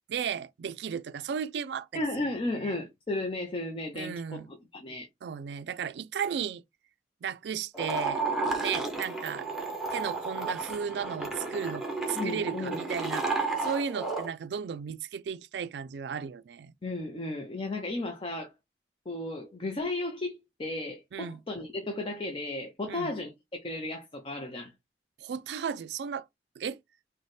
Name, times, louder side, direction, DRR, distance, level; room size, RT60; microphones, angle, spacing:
voice 1, 0.1-2.0 2.5-2.7 3.9-4.5 5.2-6.6 7.2-8.2 8.6-9.5 9.9-16.7 21.1-21.4 22.9-23.1 25.2-26.3 26.6-26.8, right 7 dB, 70° right, 0.3 m, -35 dB
voice 2, 1.9-5.1 12.2-12.8 16.8-18.5 19.1-24.7, left 2 dB, 30° left, 0.5 m, -34 dB
sound 1, 7.7-14.3, right 3 dB, ahead, 0.9 m, -32 dB
4.0 x 2.1 x 3.2 m
head